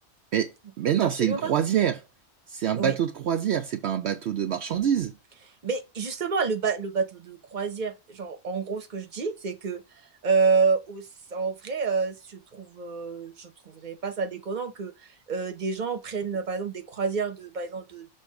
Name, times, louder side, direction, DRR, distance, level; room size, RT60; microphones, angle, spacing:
voice 1, 0.3-2.0 2.5-5.1, right 9 dB, 70° right, 0.9 m, -26 dB
voice 2, 1.0-1.5 2.7-3.0 5.6-9.8 10.2-18.1, right 5 dB, 40° right, 1.1 m, -29 dB
6.4 x 3.1 x 5.7 m
omnidirectional pair, 1.2 m